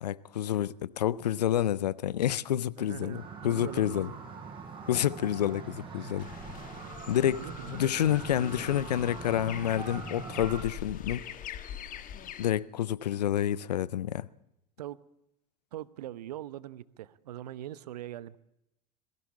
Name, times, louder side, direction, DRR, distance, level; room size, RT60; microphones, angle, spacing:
voice 1, 0.0-4.1 4.9-6.3 7.1-11.3 12.4-14.3, left 11 dB, 80° left, 0.7 m, -29 dB
voice 2, 2.8-4.1 7.4-7.9 14.8-15.0 15.7-18.4, right 13 dB, 75° right, 0.9 m, -42 dB
sound 1, 3.1-10.6, right 4 dB, 25° right, 6.2 m, -42 dB
sound 2, 6.2-12.5, left 9 dB, 40° left, 1.7 m, -43 dB
sound 3, 6.7-11.7, equal, 20° left, 2.1 m, -57 dB
21.5 x 15.5 x 8.3 m
figure-of-eight pair, 75°, 21 cm